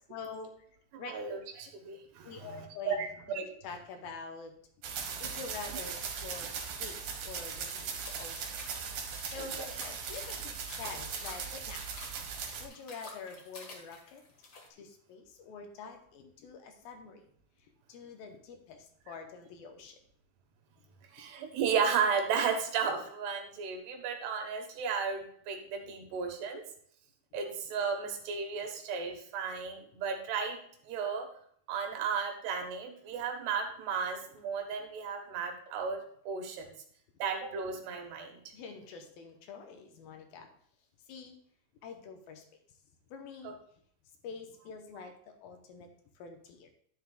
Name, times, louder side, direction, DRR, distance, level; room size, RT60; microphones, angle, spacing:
voice 1, 0.1-0.5 1.0-1.1 2.2-3.1 3.3-4.6 5.2-7.9 8.2-8.6 8.9-11.9 12.6-14.2 14.7-17.3 17.9-20.0 38.5-40.5 41.1-41.4 41.8-42.4 43.1-43.6 44.2-46.7, left 5 dB, 75° left, 4 dB, 2.5 m, -46 dB
voice 2, 0.9-3.4 5.0-5.3 9.4-9.7 21.0-26.6 27.3-30.6 30.8-31.3 31.7-36.7 37.2-38.5 43.4-43.5, right 6 dB, 85° right, 4 dB, 3.4 m, -34 dB
sound 1, 4.8-12.7, right 6 dB, 65° right, 2.2 m, -39 dB
sound 2, 8.0-14.7, left 3 dB, 60° left, 1.0 m, -50 dB
10.5 x 9.9 x 2.4 m, 0.62 s
omnidirectional pair, 4.6 m